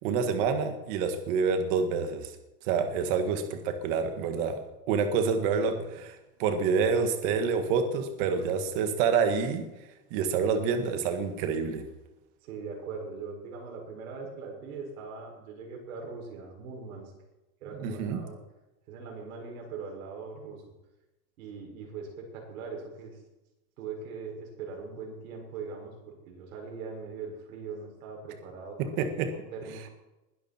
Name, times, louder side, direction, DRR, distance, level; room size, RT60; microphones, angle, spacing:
voice 1, 0.0-2.3 2.6-4.6 4.9-5.8 6.4-9.6 10.1-11.8 17.8-18.2 29.0-29.3, right 5 dB, 35° right, 7 dB, 1.7 m, -27 dB
voice 2, 5.6-6.0 8.2-8.6 12.4-17.1 17.6-18.4 18.9-20.6 21.4-23.2 23.8-29.1 29.5-29.9, right 5 dB, 60° right, 1 dB, 6.3 m, -41 dB
21.0 x 11.5 x 4.5 m, 0.99 s
supercardioid pair, 180°, 48 cm